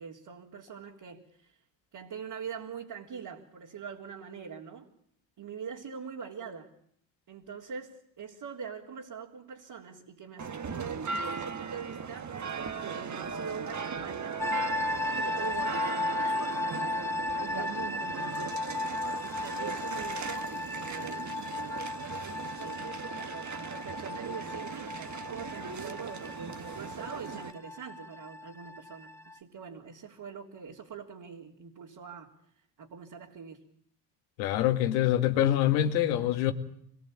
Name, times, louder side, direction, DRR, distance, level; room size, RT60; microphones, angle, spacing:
voice 1, 0.0-1.5 1.9-4.9 5.4-6.7 7.3-12.3 12.9-17.0 17.3-18.8 19.2-20.6 21.0-21.9 22.6-22.9 23.1-32.3 32.8-33.6, right 6 dB, 50° right, -3 dB, 3.7 m, -43 dB
sound 1, 10.4-27.5, right 5 dB, 35° right, 1.7 m, -38 dB
sound 2, 14.4-29.4, left 2 dB, 5° left, 1.6 m, -35 dB
voice 2, 34.4-36.5, left 12 dB, 85° left, 8 dB, 2.0 m, -25 dB
26.0 x 21.0 x 8.8 m, 0.66 s
hypercardioid pair, 55°, 50 cm